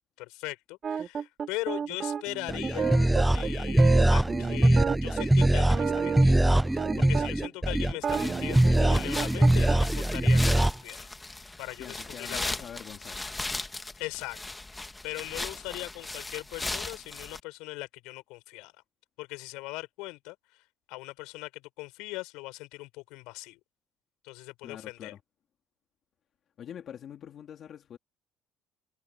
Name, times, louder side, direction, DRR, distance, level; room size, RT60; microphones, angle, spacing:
voice 1, 0.2-6.4 6.7-11.1 11.6-12.7 14.0-14.4 15.0-18.7 19.2-20.4 20.9-23.6 24.2-25.1, left 23 dB, 85° left, 5.6 m, -40 dB
sound 1, 0.8-7.5 7.9-9.8, right 7 dB, 40° right, 2.5 m, -32 dB
sound 2, 2.5-10.7, right 1 dB, 5° right, 0.5 m, -23 dB
sound 3, 8.0-17.4, left 2 dB, 15° left, 1.4 m, -38 dB
voice 2, 11.7-13.2 24.6-25.2 26.6-28.0, left 9 dB, 50° left, 2.9 m, -44 dB
cardioid pair, 115°, 0 cm